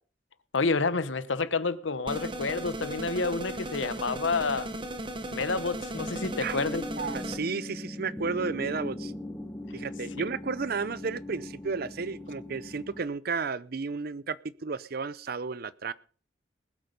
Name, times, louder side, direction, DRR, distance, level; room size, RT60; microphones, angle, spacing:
voice 1, 0.5-4.7 5.3-6.8, left 4 dB, 85° left, 1.0 m, -29 dB
sound 1, 2.1-7.4, right 1 dB, 25° right, 1.3 m, -36 dB
sound 2, 5.9-13.0, left 1 dB, 10° left, 1.1 m, -40 dB
voice 2, 7.0-9.1 9.7-15.9, right 4 dB, 55° right, 0.6 m, -33 dB
20.0 x 8.1 x 5.3 m
head